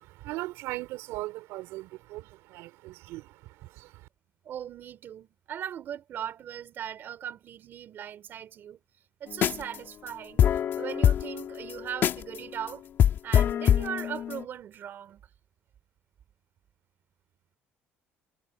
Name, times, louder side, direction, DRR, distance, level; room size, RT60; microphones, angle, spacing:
voice 1, 0.0-4.1, right 18 dB, 85° right, 5.4 m, -39 dB
voice 2, 4.4-8.8 9.2-12.9 13.2-15.2, right 9 dB, 50° right, 3.9 m, -39 dB
sound 1, 9.3-9.8 10.1-10.2 10.4-12.4 12.7-12.8 13.0-14.4, left 9 dB, 50° left, 3.7 m, -23 dB
cardioid pair, 125°, 5 cm